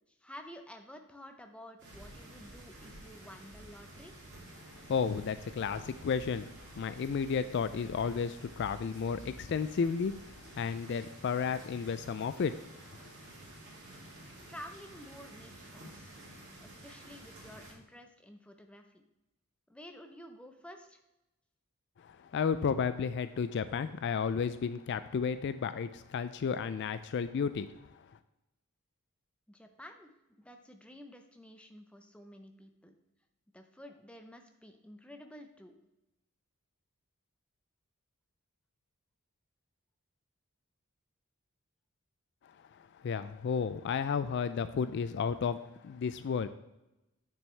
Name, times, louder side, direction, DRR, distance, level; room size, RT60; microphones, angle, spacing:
voice 1, 0.1-4.2 14.5-16.1 16.6-19.0 19.7-21.0 29.5-30.1 30.4-33.0 33.5-35.8, equal, 5° left, 5 dB, 0.6 m, -51 dB
sound 1, 1.8-17.7, right 1 dB, 50° right, 2.7 m, -51 dB
voice 2, 4.9-10.2 10.5-12.7 22.0-28.0 42.7-46.5, left 6 dB, 50° left, 12 dB, 0.3 m, -33 dB
9.0 x 6.8 x 3.3 m, 0.95 s
head